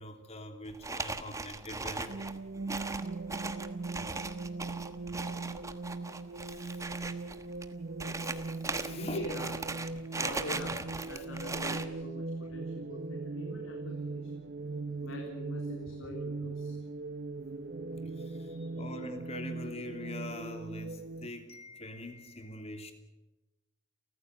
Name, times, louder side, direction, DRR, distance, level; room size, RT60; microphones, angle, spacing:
voice 1, 0.0-2.3 6.5-6.8 8.2-8.4 8.7-9.2 11.1-11.2 12.4-12.6 18.0-22.9, left 1 dB, 30° left, 6 dB, 2.9 m, -44 dB
sound 1, 0.7-11.9, right 3 dB, 15° right, 1.2 m, -38 dB
sound 2, 2.1-21.3, right 3 dB, 55° right, 0.8 m, -40 dB
voice 2, 8.9-14.3 15.0-16.7 18.4-18.8, equal, 90° left, 1 dB, 3.6 m, -44 dB
30.0 x 14.5 x 8.1 m, 1.1 s
head